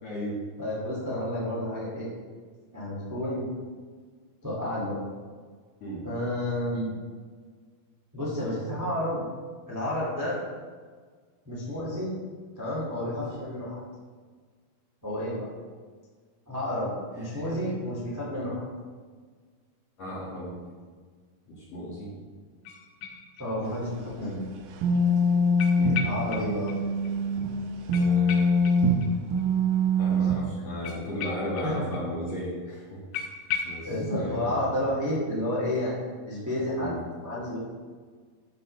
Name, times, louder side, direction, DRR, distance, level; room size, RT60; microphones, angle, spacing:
voice 1, 0.0-0.4 5.8-6.1 17.2-17.7 20.0-20.6 21.5-22.1 25.8-26.1 27.9-28.6 30.0-33.0 33.6-34.7 36.8-37.0, equal, 50° left, -6 dB, 2.2 m, -35 dB
voice 2, 0.6-2.1 2.7-3.4 4.4-5.0 6.0-6.9 8.1-9.2 9.7-10.4 11.4-12.1 12.6-13.8 15.0-15.5 16.5-18.6 23.4-24.4 26.0-26.7 31.6-31.8 33.8-36.9 37.2-37.6, left 1 dB, 10° right, -6 dB, 1.0 m, -30 dB
sound 1, 22.6-23.8 24.1-24.2 25.6-26.8 27.0-27.1 27.4-27.5 27.9-29.4 30.8-32.0 32.3-32.4 32.7-32.8 33.1-33.9, left 7 dB, 85° left, 1.8 m, -36 dB
sound 2, 23.7-27.6 27.9-30.5, equal, 80° right, 2.5 m, -24 dB
12.0 x 5.5 x 3.3 m, 1.5 s
omnidirectional pair, 4.5 m